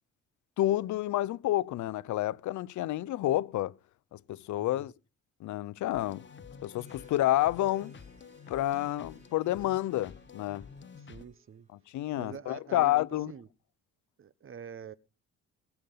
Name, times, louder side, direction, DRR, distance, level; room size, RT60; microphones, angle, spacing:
voice 1, 0.6-3.7 4.1-4.9 5.4-6.2 6.6-7.9 8.5-10.7 11.9-13.3, left 14 dB, 75° left, 0.6 m, -29 dB
sound 1, 5.9-11.2, left 6 dB, 40° left, 1.1 m, -49 dB
Harp, 6.6-12.4, right 3 dB, 25° right, 5.2 m, -65 dB
voice 2, 11.0-11.7 12.2-12.9 13.3-13.5 14.2-14.9, right 7 dB, 45° right, 1.0 m, -45 dB
20.5 x 7.0 x 5.5 m
cardioid pair, 90°, 30 cm